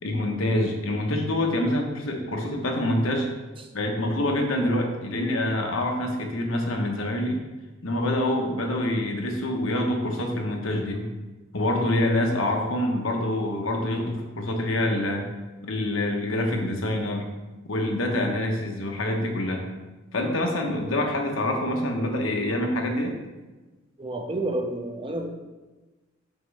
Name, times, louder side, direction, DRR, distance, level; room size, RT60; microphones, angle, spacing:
voice 1, 0.0-3.3 3.7-7.4 7.8-11.1 11.5-15.3 15.6-17.3 17.7-19.6 20.1-23.2, left 1 dB, 85° left, 2 dB, 1.1 m, -26 dB
voice 2, 24.0-25.3, right 2 dB, 25° right, 3 dB, 0.7 m, -30 dB
6.2 x 5.8 x 3.4 m, 1.2 s
head